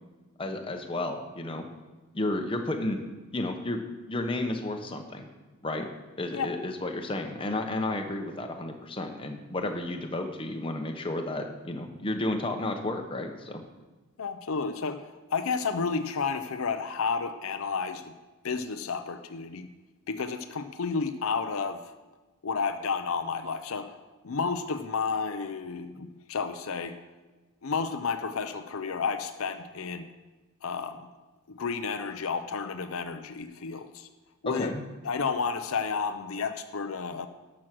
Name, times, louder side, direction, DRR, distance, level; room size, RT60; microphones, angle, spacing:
voice 1, 0.4-1.7 2.1-3.0 3.3-3.8 4.1-5.3 5.6-5.9 6.2-13.6 34.4-34.8, left 2 dB, 25° left, 4 dB, 0.9 m, -32 dB
voice 2, 14.2-18.1 18.4-19.7 20.1-21.9 22.4-23.9 24.2-27.0 27.6-30.1 30.6-31.1 31.5-34.1 34.4-34.7 35.0-37.3, left 5 dB, 70° left, 9 dB, 0.6 m, -31 dB
12.5 x 6.2 x 6.1 m, 1.2 s
head